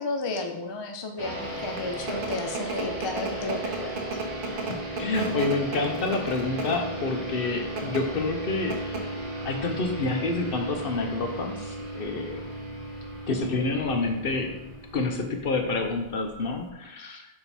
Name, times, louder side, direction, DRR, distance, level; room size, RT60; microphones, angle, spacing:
voice 1, 0.0-4.1, left 2 dB, 30° left, 4 dB, 0.5 m, -33 dB
sound 1, 1.2-16.0, right 1 dB, 35° right, 1.9 m, -36 dB
sound 2, 1.5-16.7, right 3 dB, 55° right, 1.0 m, -37 dB
voice 2, 4.7-9.1 9.4-12.4 13.3-14.6 14.9-17.3, left 3 dB, 60° left, 4 dB, 1.0 m, -28 dB
6.8 x 3.9 x 4.2 m, 0.93 s
omnidirectional pair, 1.1 m